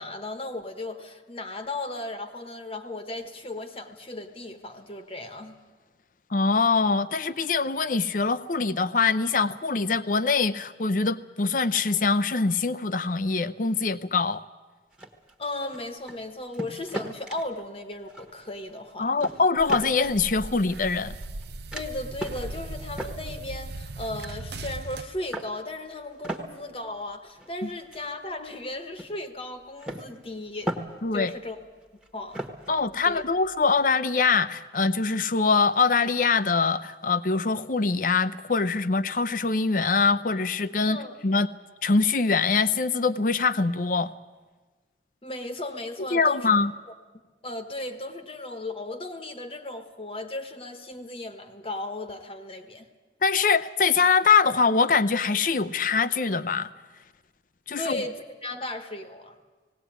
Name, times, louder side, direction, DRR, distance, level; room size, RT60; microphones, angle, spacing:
voice 1, 0.0-5.5 15.4-19.1 21.7-30.8 31.1-31.6 32.1-32.5 33.0-33.2 40.9-41.1 45.2-46.5 47.4-52.9 57.8-59.4, left 2 dB, 35° left, 7 dB, 1.2 m, -36 dB
voice 2, 6.3-14.4 19.0-21.2 27.6-27.7 31.0-31.3 32.7-41.0 41.2-41.5 41.8-44.1 46.1-46.7 53.2-56.7 57.7-58.0, left 4 dB, 50° left, 14 dB, 0.7 m, -23 dB
sound 1, 14.9-16.2 16.5-17.6 18.1-18.6 18.9-20.1 20.6-21.5 21.7-21.9 22.2-22.5 22.9-24.5 24.9-25.6 26.0-28.7 29.0-29.1 29.8-31.3 31.6-33.8, right 1 dB, 5° right, 1.4 m, -37 dB
sound 2, 19.6-25.0, right 2 dB, 65° right, 0.7 m, -38 dB
18.0 x 17.5 x 9.2 m, 1.3 s
head